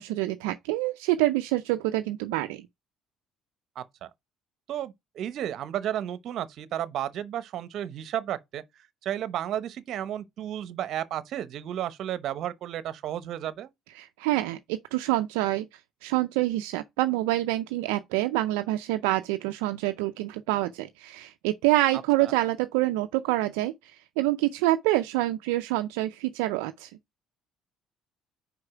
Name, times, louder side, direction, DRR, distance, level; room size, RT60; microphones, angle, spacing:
voice 1, 0.0-2.7 14.0-15.7 16.0-23.7 24.2-26.9, right 16 dB, 90° right, 0.4 m, -26 dB
voice 2, 3.8-4.1 4.7-8.6 9.0-13.7 22.2-22.3, right 11 dB, 65° right, 0.8 m, -33 dB
5.1 x 4.8 x 4.8 m
supercardioid pair, 75°, 0 cm